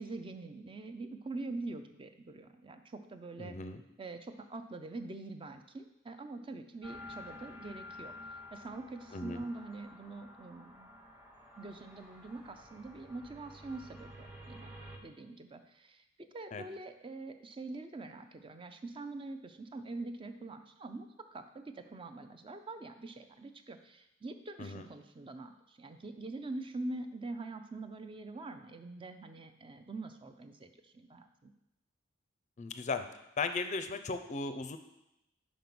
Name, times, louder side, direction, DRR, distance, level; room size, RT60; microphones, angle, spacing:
voice 1, 0.0-3.5 4.0-8.1 8.5-10.9 11.6-14.7 15.0-31.5, right 2 dB, 25° right, 8 dB, 0.5 m, -44 dB
voice 2, 3.4-3.8 9.1-9.4 16.5-16.6 24.6-24.9 32.6-33.1 33.4-34.8, left 4 dB, 35° left, 9 dB, 0.5 m, -36 dB
sound 1, 6.8-15.0, left 1 dB, 10° right, 1.0 m, -51 dB
5.3 x 5.1 x 6.0 m, 0.86 s
head